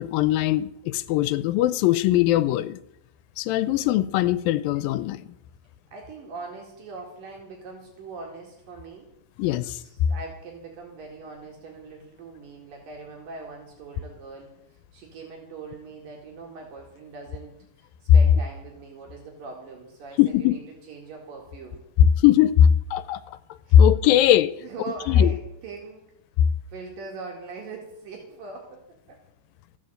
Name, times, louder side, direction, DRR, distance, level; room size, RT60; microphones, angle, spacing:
voice 1, 0.0-2.8 3.4-5.3 9.4-9.8 20.2-20.6 22.0-23.4 23.7-24.5 25.1-25.3, left 10 dB, 85° left, 16 dB, 2.4 m, -20 dB
voice 2, 5.9-9.1 9.8-20.6 20.9-21.8 23.7-23.8 24.6-26.0 26.7-28.8 29.1-29.2, right 4 dB, 70° right, 0 dB, 3.8 m, -41 dB
14.0 x 9.1 x 7.8 m, 0.78 s
omnidirectional pair, 4.0 m